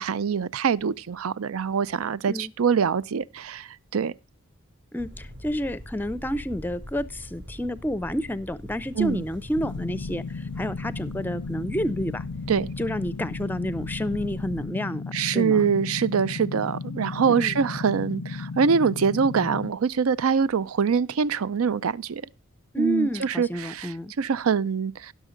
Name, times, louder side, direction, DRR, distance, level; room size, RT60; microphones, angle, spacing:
voice 1, 0.0-4.1 9.0-9.2 12.5-12.7 15.1-22.2 22.8-25.1, right 6 dB, 75° right, 0.5 m, -24 dB
voice 2, 4.9-12.2 12.8-15.0 15.3-15.6 17.4-17.5 22.7-24.1, equal, 10° left, 0.5 m, -29 dB
sound 1, 5.0-14.6, equal, 55° right, 5.1 m, -42 dB
sound 2, 9.6-19.7, left 4 dB, 75° left, 0.5 m, -35 dB
16.0 x 6.4 x 3.8 m
head